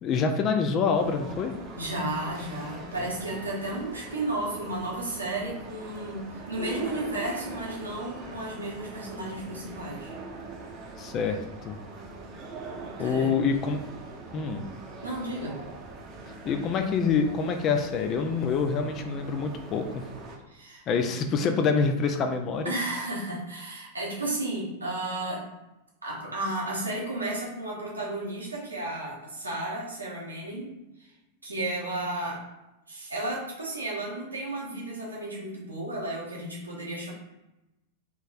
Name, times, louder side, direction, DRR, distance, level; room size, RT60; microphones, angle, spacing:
voice 1, 0.0-1.6 11.0-11.8 13.0-13.8 14.3-14.6 16.4-19.9 20.9-22.7, left 5 dB, 30° left, 6 dB, 0.4 m, -26 dB
sound 1, 0.9-20.4, right 3 dB, 35° right, 0.8 m, -42 dB
voice 2, 1.8-10.1 13.0-13.3 15.0-15.6 20.5-20.8 22.6-25.5 26.0-30.7 31.0-31.1 31.4-32.4 32.9-37.1, right 2 dB, 80° right, -4 dB, 1.1 m, -33 dB
3.5 x 3.1 x 2.5 m, 0.97 s
figure-of-eight pair, 90°, 0 cm